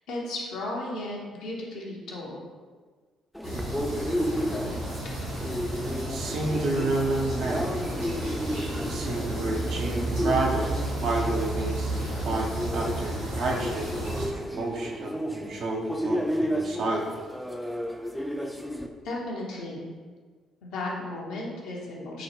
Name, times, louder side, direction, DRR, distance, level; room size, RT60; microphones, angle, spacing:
voice 1, 0.1-2.4 19.0-19.9 20.6-22.2, left 2 dB, 65° left, -3 dB, 0.6 m, -34 dB
sound 1, 3.3-18.9, equal, 5° left, 0.3 m, -33 dB
sound 2, 3.4-14.3, right 1 dB, 75° right, 1.3 m, -32 dB
voice 2, 6.1-7.8 8.8-10.7 11.0-17.2, right 2 dB, 60° right, -1 dB, 0.5 m, -30 dB
3.7 x 2.0 x 3.2 m, 1.5 s
figure-of-eight pair, 45°, 0 cm